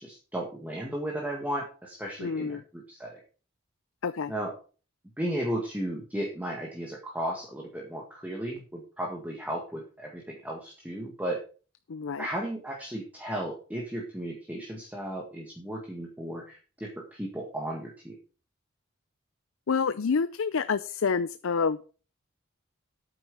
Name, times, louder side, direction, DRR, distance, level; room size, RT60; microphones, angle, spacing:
voice 1, 0.0-3.2 4.3-4.5 5.2-11.4 12.2-18.2, right 1 dB, 10° right, -1 dB, 1.8 m, -35 dB
voice 2, 2.2-2.6 4.0-4.3 11.9-12.3 19.7-21.8, left 5 dB, 80° left, 14 dB, 0.5 m, -28 dB
9.0 x 8.0 x 5.4 m, 0.37 s
head